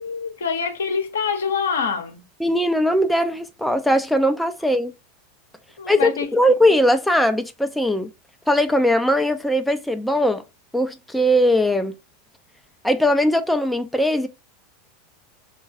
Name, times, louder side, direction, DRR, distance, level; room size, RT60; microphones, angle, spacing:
voice 1, 0.0-2.2 5.8-6.3, left 6 dB, 75° left, 0.7 m, -25 dB
voice 2, 2.4-4.9 5.9-8.1 8.5-10.4 10.7-11.9 12.8-14.3, equal, 5° left, 0.4 m, -20 dB
4.2 x 2.2 x 2.4 m
figure-of-eight pair, 85°, 0 cm